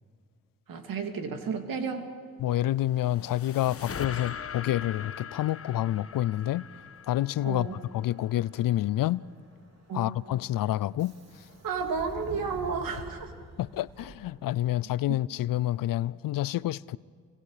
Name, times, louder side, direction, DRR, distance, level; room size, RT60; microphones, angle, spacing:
voice 1, 0.7-2.1 7.4-7.8 9.9-10.2 11.6-13.3, right 5 dB, 70° right, 2.7 m, -32 dB
voice 2, 2.4-6.7 7.1-7.7 7.9-9.2 9.9-11.5 13.6-17.0, left 14 dB, 70° left, 0.5 m, -28 dB
sound 1, 2.6-8.0, left 7 dB, 40° left, 1.2 m, -41 dB
Subway metro underground, 2.9-14.8, right 1 dB, 45° right, 3.3 m, -51 dB
29.5 x 24.5 x 5.0 m
cardioid pair, 65°, 35 cm